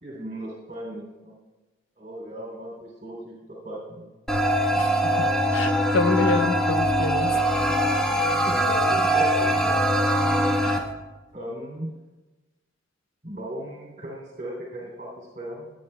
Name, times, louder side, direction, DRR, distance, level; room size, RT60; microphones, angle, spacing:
voice 1, 0.0-1.3 2.0-3.3 3.6-4.1 8.4-10.3 11.3-11.9 13.2-15.7, right 1 dB, 40° right, -4 dB, 2.9 m, -37 dB
sound 1, 4.3-10.8, equal, 5° left, 1.1 m, -22 dB
voice 2, 4.8-7.6 10.6-10.8, left 3 dB, 75° left, 8 dB, 0.7 m, -28 dB
23.0 x 9.3 x 2.2 m, 1.1 s
head